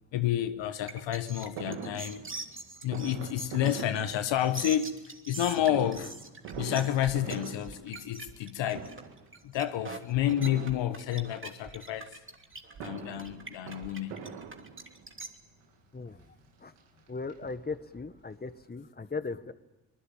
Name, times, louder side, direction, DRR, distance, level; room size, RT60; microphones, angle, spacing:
voice 1, 0.1-2.2 2.8-5.0 5.3-6.1 6.5-8.9 9.4-12.2 12.8-14.2, left 11 dB, 75° left, 1.3 m, -30 dB
sound 1, 0.9-15.3, right 3 dB, 25° right, 3.0 m, -43 dB
Fireworks, 1.6-4.8 5.5-8.5 8.7-9.3 10.3-11.4 12.5-15.2 15.9-16.0 16.3-16.4 16.8-18.0 18.3-18.4 18.6-18.7, right 6 dB, 90° right, 2.4 m, -43 dB
sound 2, 6.5-8.0 8.2-8.5 8.9-9.0 10.1-14.1 14.4-14.7 15.0-15.1, right 5 dB, 55° right, 2.9 m, -53 dB
voice 2, 17.1-19.5, left 4 dB, 20° left, 1.5 m, -38 dB
25.0 x 20.0 x 8.9 m
supercardioid pair, 50°, 44 cm